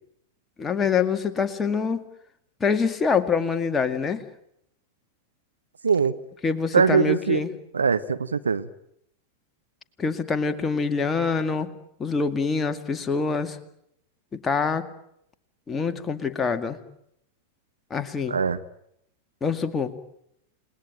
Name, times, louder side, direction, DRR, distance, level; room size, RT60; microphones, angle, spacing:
voice 1, 0.6-2.1 2.6-4.2 6.4-7.5 10.0-11.7 12.0-13.6 14.3-14.9 15.7-16.8 17.9-18.4 19.4-19.9, left 5 dB, 15° left, 7 dB, 2.2 m, -25 dB
voice 2, 5.8-6.1 6.7-7.4 7.7-8.7 18.3-18.6, right 5 dB, 75° right, 12 dB, 1.0 m, -21 dB
30.0 x 20.0 x 9.1 m, 0.77 s
figure-of-eight pair, 90°, 0 cm